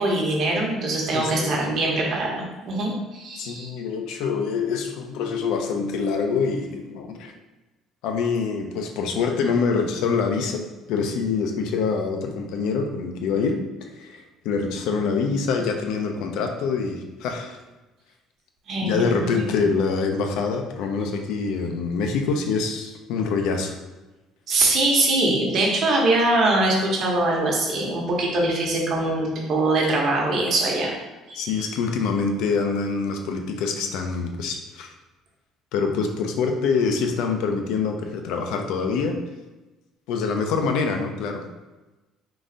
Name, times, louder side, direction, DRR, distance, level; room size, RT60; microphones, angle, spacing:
voice 1, 0.0-3.7 18.7-19.3 24.5-30.9 31.3-31.7, right 2 dB, 50° right, -2 dB, 1.0 m, -23 dB
voice 2, 1.1-1.6 3.3-7.3 8.0-17.6 18.8-23.8 31.3-34.9 35.7-39.2 40.1-41.4, left 5 dB, 80° left, 4 dB, 0.5 m, -25 dB
3.8 x 2.5 x 3.9 m, 1.1 s
cardioid pair, 140°, 0 cm